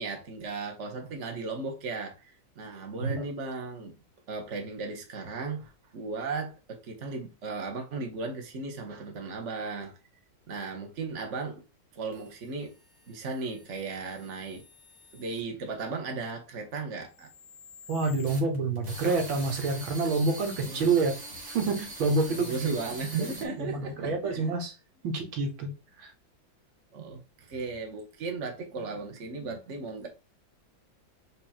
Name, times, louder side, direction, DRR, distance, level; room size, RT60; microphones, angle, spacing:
voice 1, 0.0-3.9 4.3-9.9 10.5-11.6 11.9-12.7 13.1-14.6 15.1-17.3 20.6-20.9 22.3-24.5 26.9-30.1, right 4 dB, 40° right, 1.6 m, -36 dB
sound 1, 12.1-15.4 17.0-23.4, right 1 dB, 20° right, 1.8 m, -44 dB
voice 2, 17.9-21.2 21.5-22.8 23.2-23.3 23.6-24.7 25.0-25.7 26.0-26.1, right 3 dB, 80° right, 2.0 m, -28 dB
7.7 x 3.3 x 4.3 m
omnidirectional pair, 2.1 m